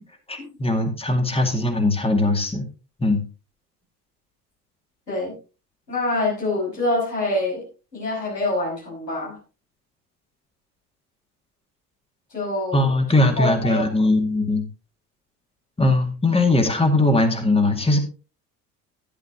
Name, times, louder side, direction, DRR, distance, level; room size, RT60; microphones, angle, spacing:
voice 1, 0.3-2.7 3.0-3.2 12.7-14.6 15.8-18.0, left 2 dB, 10° left, 5 dB, 2.2 m, -20 dB
voice 2, 5.9-7.7 7.9-9.4 12.3-12.9 13.4-13.8, left 2 dB, 90° left, -4 dB, 5.2 m, -25 dB
11.0 x 11.0 x 2.9 m, 0.34 s
figure-of-eight pair, 60°, 47 cm